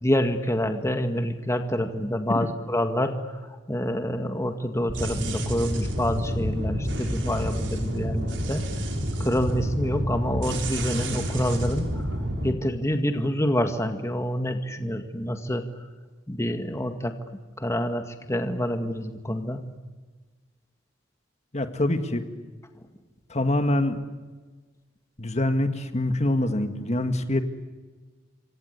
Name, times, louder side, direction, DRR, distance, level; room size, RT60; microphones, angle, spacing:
voice 1, 0.0-3.2 3.7-8.6 9.2-12.0 12.4-15.6 16.3-17.1 17.6-19.6, equal, 15° left, 6 dB, 1.9 m, -27 dB
sound 1, 4.9-12.5, equal, 70° right, 5.3 m, -29 dB
voice 2, 21.5-22.3 23.3-24.0 25.2-27.4, left 1 dB, 35° left, 8 dB, 2.0 m, -25 dB
28.0 x 25.0 x 8.3 m, 1.3 s
head